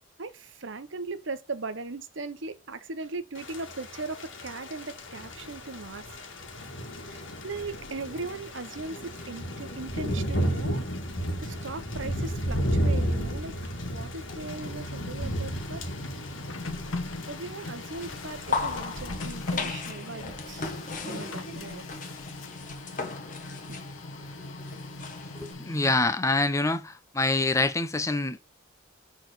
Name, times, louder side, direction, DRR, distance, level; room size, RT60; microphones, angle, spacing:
voice 1, 0.2-6.0 7.0-10.8 11.2-13.5 13.9-15.8 17.3-20.7 21.0-21.8 23.7-23.8, right 3 dB, 65° right, 0.9 m, -38 dB
Thunder / Rain, 3.4-19.0, equal, 70° left, 1.9 m, -33 dB
Printer, 14.1-26.2, left 2 dB, 85° left, 1.4 m, -40 dB
sound 1, 17.9-25.5, left 4 dB, 40° left, 1.4 m, -37 dB
voice 2, 25.3-28.4, left 2 dB, 15° left, 0.7 m, -26 dB
6.5 x 4.2 x 6.4 m
head